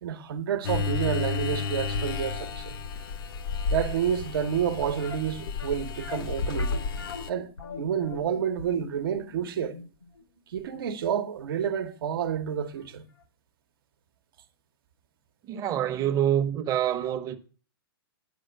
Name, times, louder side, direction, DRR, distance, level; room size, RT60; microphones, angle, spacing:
voice 1, 0.0-2.8 3.7-6.7 7.3-7.5 7.8-9.8 10.5-13.1, right 8 dB, 65° right, 1.0 m, -29 dB
Electrical Noises Soft, 0.6-7.3, left 4 dB, 65° left, 1.1 m, -31 dB
sound 1, 5.0-11.8 12.1-12.2 12.8-12.9 13.2-13.3, left 5 dB, 90° left, 6.0 m, -42 dB
voice 2, 15.5-17.4, right 10 dB, 25° right, 0.9 m, -26 dB
9.1 x 5.0 x 6.7 m
hypercardioid pair, 120°, 13 cm